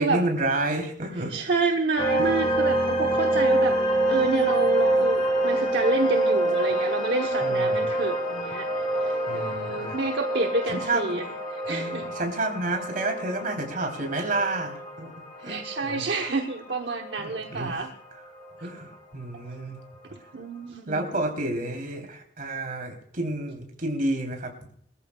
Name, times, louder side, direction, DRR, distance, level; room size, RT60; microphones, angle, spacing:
voice 1, 0.0-1.5 2.2-2.3 7.4-7.9 9.3-10.0 10.7-11.2 11.6-16.0 17.2-17.8 18.6-19.8 20.9-24.5, right 2 dB, 50° right, 3 dB, 3.3 m, -30 dB
voice 2, 1.3-3.8 4.1-8.7 8.9-11.3 11.5-12.1 15.4-17.9 18.6-18.7 20.1-21.0, right 3 dB, 70° right, 3 dB, 1.0 m, -28 dB
sound 1, 2.0-19.0, right 1 dB, 30° left, 4.5 m, -27 dB
22.5 x 14.0 x 2.3 m, 0.64 s
head